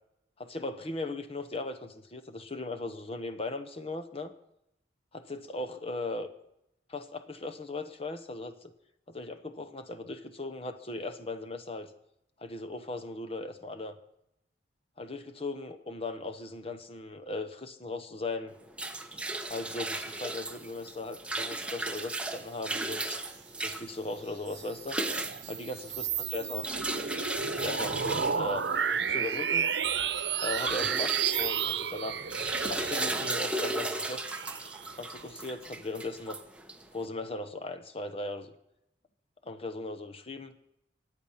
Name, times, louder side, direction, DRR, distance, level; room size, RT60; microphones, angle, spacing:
voice 1, 0.4-4.3 5.1-6.3 6.9-8.7 9.1-11.9 12.4-13.9 15.0-18.5 19.5-23.2 23.6-25.0 25.5-26.6 27.5-28.6 29.1-29.7 30.4-32.2 32.7-34.2 35.0-36.4 36.9-38.5 39.4-40.6, left 2 dB, 35° left, 8 dB, 0.9 m, -38 dB
sound 1, 18.5-37.0, right 2 dB, 5° right, 0.9 m, -36 dB
sound 2, 24.3-35.2, right 7 dB, 75° right, 0.9 m, -32 dB
25.0 x 9.0 x 5.7 m, 0.83 s
head